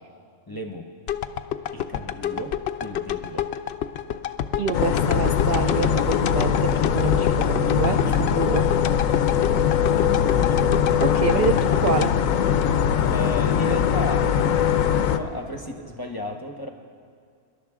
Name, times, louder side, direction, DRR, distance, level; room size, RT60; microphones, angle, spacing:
voice 1, 0.5-0.9 1.7-3.5 9.8-10.7 12.6-12.8 13.1-14.6 15.0-16.7, left 1 dB, 20° left, 4 dB, 0.7 m, -35 dB
sound 1, 1.1-13.3 13.7-13.8, left 9 dB, 65° left, 0.7 m, -29 dB
voice 2, 4.6-8.6 11.0-12.1, right 7 dB, 60° right, 6 dB, 0.5 m, -27 dB
sound 2, 4.7-15.2, left 8 dB, 80° left, 1.0 m, -21 dB
25.5 x 11.5 x 3.6 m, 2.2 s
omnidirectional pair, 1.4 m